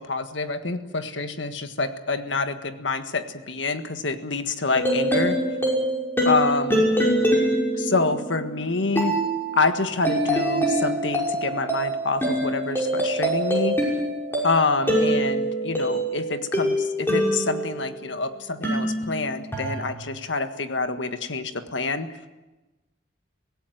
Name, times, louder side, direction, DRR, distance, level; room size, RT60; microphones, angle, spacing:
voice 1, 0.0-5.4 6.2-6.8 7.8-9.2 9.5-13.8 14.4-22.1, left 3 dB, 90° left, 8 dB, 1.7 m, -27 dB
sound 1, 4.7-18.1 18.6-19.8, right 1 dB, 10° left, 5.8 m, -24 dB
24.0 x 17.0 x 9.4 m, 1.1 s
head